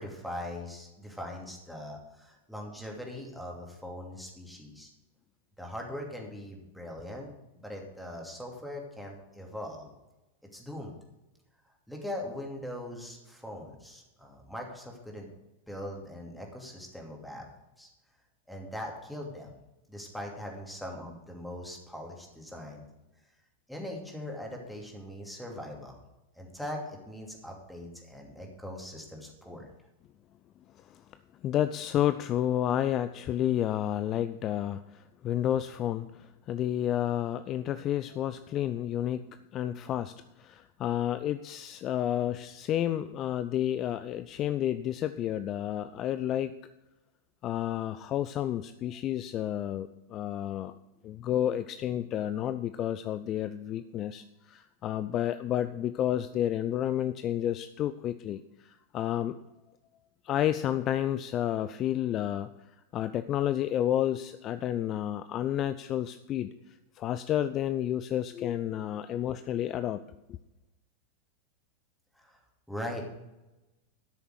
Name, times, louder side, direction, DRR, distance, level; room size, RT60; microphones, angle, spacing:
voice 1, 0.0-4.9 5.6-7.3 7.5-9.9 10.5-10.9 11.9-15.3 15.7-17.5 17.8-17.9 18.5-19.5 19.9-22.8 23.7-26.0 26.3-29.7 72.1-72.4 72.7-73.1, left 1 dB, ahead, 0 dB, 2.7 m, -41 dB
voice 2, 31.4-39.3 39.5-46.5 47.4-50.7 51.0-59.4 60.2-62.5 62.9-66.5 67.0-70.4, left 11 dB, 35° left, 12 dB, 0.4 m, -30 dB
13.0 x 6.7 x 6.5 m, 1.0 s
figure-of-eight pair, 90°, 0 cm